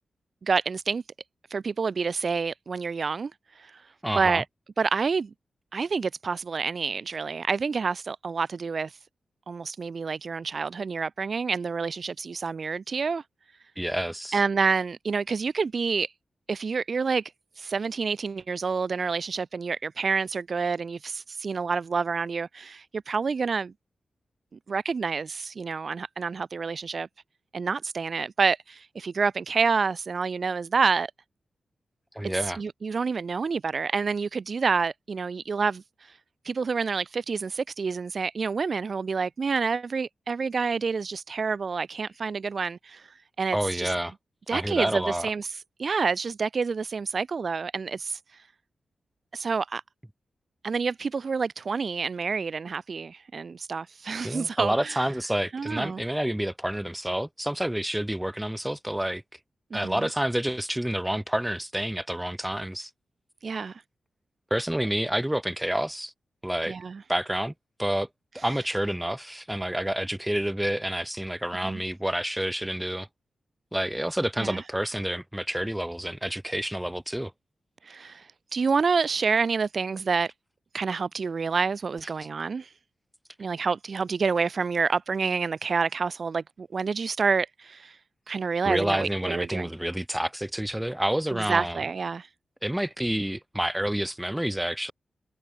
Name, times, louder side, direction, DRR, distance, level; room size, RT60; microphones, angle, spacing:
voice 1, 0.4-1.0 1.5-3.8 4.1-4.4 4.8-5.3 5.7-9.0 9.5-13.2 14.3-16.1 16.5-17.3 17.6-23.7 24.7-27.1 27.5-31.1 32.4-36.2 36.4-43.9 44.5-48.2 49.3-49.8 50.6-55.1 55.5-56.0 59.7-60.0 63.4-63.8 66.7-67.0 71.6-71.8 74.4-74.6 77.8-80.3 80.7-82.7 83.4-88.0 88.3-89.7 91.5-92.3, right 5 dB, 45° right, 1.1 m, -28 dB
voice 2, 4.0-4.4 13.8-14.4 32.1-32.6 43.5-44.1 44.5-45.3 54.2-59.2 59.7-62.9 64.5-66.1 66.4-66.8 67.1-67.5 67.8-68.1 68.3-73.1 73.7-77.3 88.6-91.8 92.6-94.9, right 1 dB, 5° right, 4.0 m, -29 dB
wide cardioid pair, 165°, 0 cm